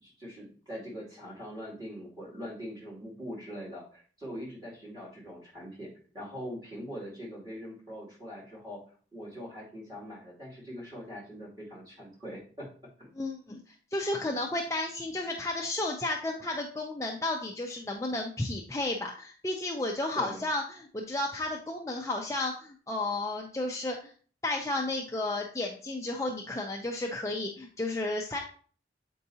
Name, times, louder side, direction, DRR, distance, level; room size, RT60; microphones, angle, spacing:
voice 1, 0.0-8.8 9.1-12.7 13.0-13.1 20.2-20.4, equal, 20° right, -6 dB, 2.5 m, -42 dB
voice 2, 13.2-13.6 13.9-24.1 24.4-28.4, left 2 dB, 15° left, 1 dB, 0.5 m, -32 dB
7.7 x 4.6 x 2.7 m, 0.43 s
head